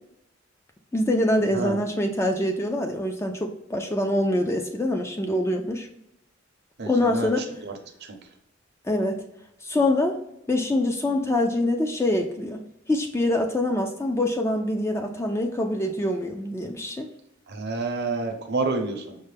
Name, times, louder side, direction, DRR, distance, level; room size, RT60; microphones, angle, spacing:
voice 1, 0.9-5.9 6.9-7.4 8.9-9.2 9.6-10.2 10.5-12.6 12.9-17.1, left 1 dB, 15° left, 3 dB, 0.3 m, -24 dB
voice 2, 6.8-7.3 7.6-7.7 8.0-8.2 17.5-19.2, right 3 dB, 55° right, 5 dB, 0.7 m, -29 dB
5.4 x 2.1 x 3.3 m, 0.78 s
head